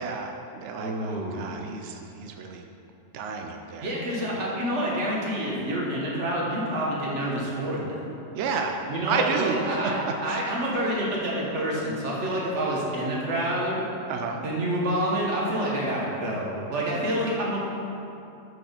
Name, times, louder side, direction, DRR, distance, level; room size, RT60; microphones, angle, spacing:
voice 1, 0.0-2.6 3.1-3.9 4.3-4.5 8.3-8.8 9.1-10.4 14.1-14.4, right 5 dB, 80° right, 3 dB, 0.6 m, -31 dB
voice 2, 0.7-1.4 3.8-8.0 8.9-13.8 14.4-17.6, right 1 dB, 45° right, -4 dB, 1.4 m, -28 dB
6.5 x 4.3 x 5.0 m, 2.7 s
omnidirectional pair, 1.7 m